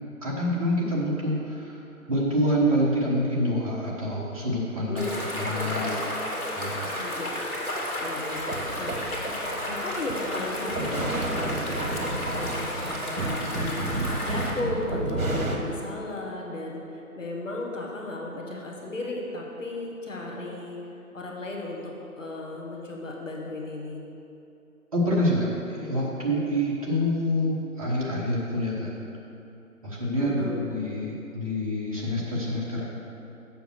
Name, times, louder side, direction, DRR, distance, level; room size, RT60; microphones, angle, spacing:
voice 1, 0.2-1.8 2.1-6.0 6.5-6.9 24.9-29.0 29.8-32.9, equal, 25° right, -5 dB, 1.3 m, -27 dB
voice 2, 4.9-6.2 7.0-7.3 8.0-9.3 9.6-20.8 21.1-24.0 30.2-30.7, left 2 dB, 55° left, -1 dB, 1.5 m, -35 dB
sound 1, 5.0-14.5, left 1 dB, 75° left, 2.2 m, -32 dB
sound 2, 8.4-15.6, right 2 dB, 70° right, 1.4 m, -31 dB
7.1 x 6.5 x 6.3 m, 2.7 s
figure-of-eight pair, 150°, 44 cm